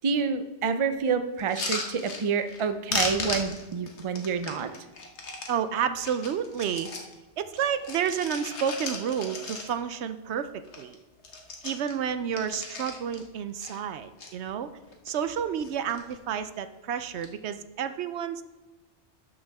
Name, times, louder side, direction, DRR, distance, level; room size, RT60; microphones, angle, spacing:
voice 1, 0.0-4.7, right 5 dB, 40° right, 9 dB, 0.5 m, -28 dB
sound 1, 1.4-2.6 2.9-5.5 6.0-7.1 7.5-10.0 10.3-10.4 10.6-10.9 11.2-13.2 13.6-14.3 14.8-15.3 15.6-16.2 17.0-17.3, left 3 dB, 90° left, 1.5 m, -36 dB
voice 2, 5.5-6.9 7.4-11.0 11.6-14.7 15.1-18.4, right 8 dB, 80° right, 11 dB, 0.9 m, -30 dB
12.0 x 7.0 x 3.5 m, 1.1 s
omnidirectional pair, 1.1 m